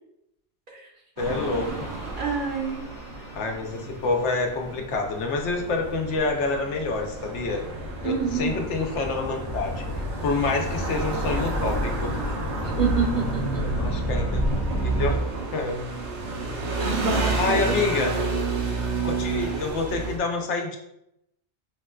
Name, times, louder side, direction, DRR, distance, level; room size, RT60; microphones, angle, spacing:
voice 1, 1.2-1.9 3.3-7.6 8.0-12.1 13.7-14.4 14.8-15.2 15.5-15.8 17.4-18.1 19.0-20.8, left 3 dB, 85° left, 2 dB, 0.9 m, -27 dB
sound 1, 1.2-15.2, equal, 50° left, 0.6 m, -33 dB
sound 2, 1.2-20.2, right 3 dB, 85° right, 1.0 m, -31 dB
voice 2, 2.2-2.8 8.0-8.6 12.6-13.6 16.8-18.1, right 4 dB, 55° right, -1 dB, 0.7 m, -27 dB
4.7 x 2.1 x 2.3 m, 0.81 s
omnidirectional pair, 1.2 m